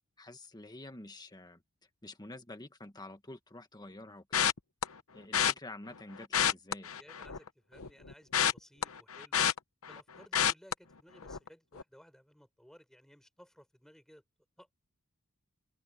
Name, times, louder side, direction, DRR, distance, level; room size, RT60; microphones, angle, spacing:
voice 1, 0.2-1.6 2.0-4.5 5.1-6.9, left 2 dB, 20° left, 1.6 m, -48 dB
sound 1, 4.3-4.8 5.3-5.5 6.2-7.5 7.8-10.0 10.3-10.7 11.2-11.5 11.8-11.9, left 9 dB, 65° left, 0.9 m, -29 dB
voice 2, 6.9-9.4 9.9-14.2 14.6-14.7, equal, ahead, 6.6 m, -59 dB
open air
head